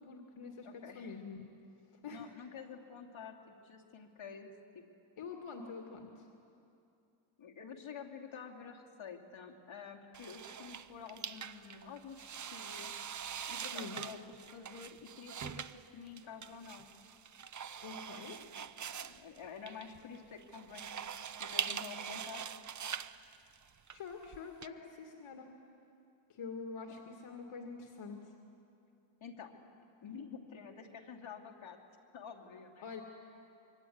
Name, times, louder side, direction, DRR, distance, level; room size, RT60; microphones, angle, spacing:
voice 1, 0.0-1.4 2.0-2.3 5.2-6.3 13.7-14.0 17.8-18.4 23.9-25.5 26.3-28.3 32.8-33.0, left 5 dB, 85° left, 2 dB, 2.3 m, -46 dB
voice 2, 0.6-1.2 2.1-4.8 7.4-14.2 14.5-16.9 18.6-21.1 21.4-22.4 26.9-27.0 29.2-29.7 30.0-31.8 32.1-32.9, left 6 dB, 70° left, 0 dB, 2.8 m, -49 dB
sound 1, 10.1-24.7, right 8 dB, 40° right, 0.6 m, -43 dB
25.0 x 24.5 x 9.4 m, 2.7 s
wide cardioid pair, 155°, 49 cm